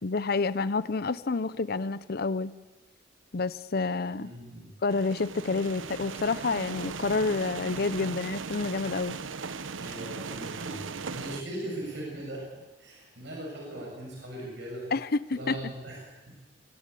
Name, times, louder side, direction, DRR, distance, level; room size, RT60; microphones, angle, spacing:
voice 1, 0.0-2.5 3.3-4.3 4.8-9.2 14.9-15.6, left 3 dB, 55° left, 16 dB, 0.7 m, -29 dB
voice 2, 4.2-4.7 9.8-12.5 12.8-14.9 15.3-16.0 16.3-16.4, right 1 dB, 65° right, -2 dB, 7.0 m, -39 dB
sound 1, 4.9-11.4, right 4 dB, 90° right, 0.9 m, -38 dB
23.5 x 14.0 x 8.4 m, 1.1 s
head